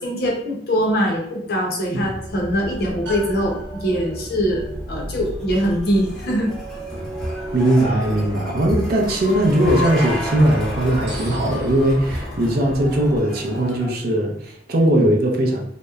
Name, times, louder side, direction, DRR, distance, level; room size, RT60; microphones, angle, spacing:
voice 1, 0.0-6.5, equal, 55° left, -1 dB, 0.6 m, -22 dB
sound 1, 2.0-13.2, equal, 75° right, 1.2 m, -33 dB
sound 2, 4.6-13.9, left 1 dB, 5° left, 0.6 m, -33 dB
voice 2, 7.5-15.6, right 1 dB, 55° right, 1 dB, 0.4 m, -19 dB
2.8 x 2.0 x 2.3 m, 0.73 s
head